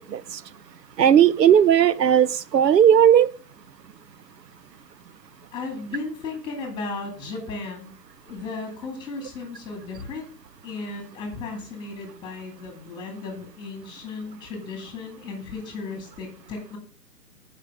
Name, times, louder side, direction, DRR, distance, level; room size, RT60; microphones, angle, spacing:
voice 1, 1.0-3.3, right 9 dB, 85° right, 0.6 m, -16 dB
voice 2, 5.5-8.0 8.2-10.3 10.6-16.8, left 3 dB, 10° left, 1.9 m, -35 dB
13.5 x 5.1 x 3.6 m
figure-of-eight pair, 135°, 48 cm